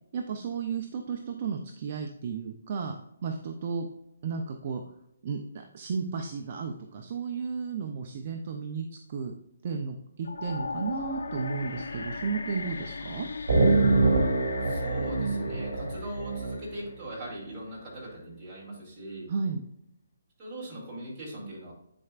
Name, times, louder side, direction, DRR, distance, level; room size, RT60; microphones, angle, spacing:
voice 1, 0.1-2.9 3.2-3.9 4.2-4.8 5.2-5.4 5.7-9.3 9.6-13.3 19.3-19.6, right 5 dB, 35° right, 3 dB, 0.5 m, -33 dB
sound 1, 10.2-17.3, left 4 dB, 80° left, 0.6 m, -38 dB
sound 2, 13.5-17.1, right 3 dB, 55° right, 1.8 m, -25 dB
voice 2, 14.6-19.3 20.4-21.7, right 1 dB, 10° right, -8 dB, 2.4 m, -40 dB
9.8 x 4.4 x 2.4 m, 0.79 s
hypercardioid pair, 175°, 0 cm